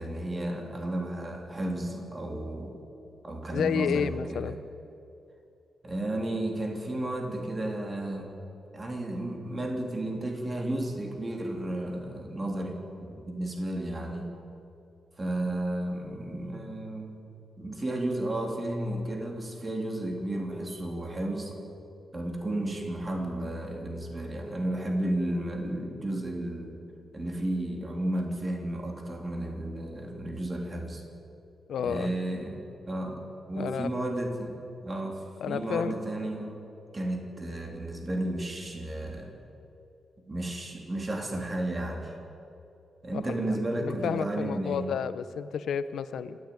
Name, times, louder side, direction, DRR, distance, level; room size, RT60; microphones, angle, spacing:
voice 1, 0.0-2.8 3.2-4.6 5.8-8.4 8.7-14.3 15.2-17.2 17.6-21.5 22.1-26.7 27.1-31.0 31.8-34.6 34.8-36.7 36.9-39.4 40.3-42.1 43.0-44.9, right 1 dB, 20° right, 2 dB, 3.3 m, -33 dB
voice 2, 3.5-4.6 31.7-32.1 33.6-33.9 35.4-36.0 43.1-43.2 43.5-46.4, left 7 dB, 75° left, 12 dB, 1.0 m, -31 dB
27.5 x 14.0 x 9.4 m, 2.7 s
wide cardioid pair, 155°, 0 cm